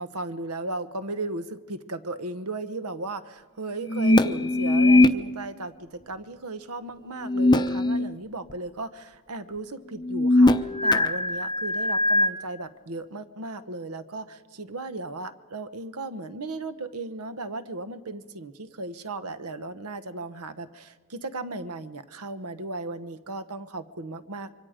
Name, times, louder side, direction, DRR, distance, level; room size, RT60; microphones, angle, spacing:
voice 1, 0.0-24.5, right 2 dB, 80° right, 12 dB, 1.0 m, -36 dB
sound 1, 3.8-5.1 7.2-8.1 8.5-8.6 10.0-12.3, left 2 dB, 20° left, 0.7 m, -20 dB
26.0 x 24.0 x 5.1 m, 1.5 s
head